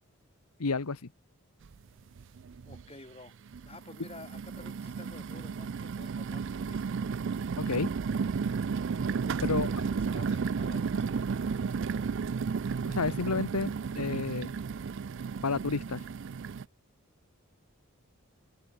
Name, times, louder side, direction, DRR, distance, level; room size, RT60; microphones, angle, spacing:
voice 1, 0.6-1.0 7.6-7.9 9.4-9.7 12.9-14.5 15.4-16.0, left 4 dB, 90° left, 1.1 m, -30 dB
sound 1, 1.6-1.7 2.2-2.8 3.5-16.6, right 5 dB, 55° right, 0.4 m, -33 dB
voice 2, 2.7-3.3 3.6-7.1 9.3-12.0, left 2 dB, 25° left, 5.1 m, -51 dB
head